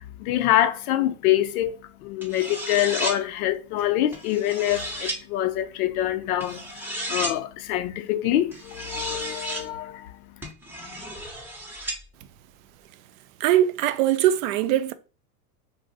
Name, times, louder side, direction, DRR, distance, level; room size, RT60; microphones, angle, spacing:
voice 1, 0.0-10.2, left 13 dB, 80° left, 0.6 m, -25 dB
sound 1, 2.2-3.2 4.1-5.2 6.4-7.4 8.5-9.7 10.4-12.0, right 1 dB, 5° right, 0.6 m, -33 dB
voice 2, 13.4-14.9, right 12 dB, 70° right, 0.5 m, -21 dB
2.5 x 2.0 x 3.9 m
supercardioid pair, 115°, 43 cm